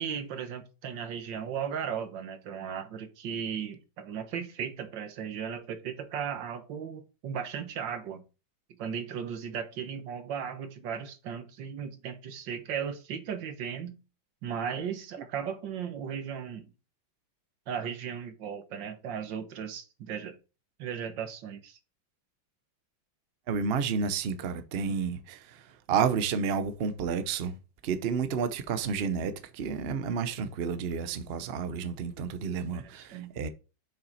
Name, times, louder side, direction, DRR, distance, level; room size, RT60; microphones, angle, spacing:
voice 1, 0.0-8.2 8.8-14.0 14.4-16.7 17.7-20.4 20.8-21.8 32.7-33.4, right 7 dB, 65° right, 1.7 m, -36 dB
voice 2, 23.5-27.5 27.8-33.5, right 6 dB, 90° right, 0.5 m, -31 dB
7.3 x 5.7 x 4.0 m
omnidirectional pair, 2.2 m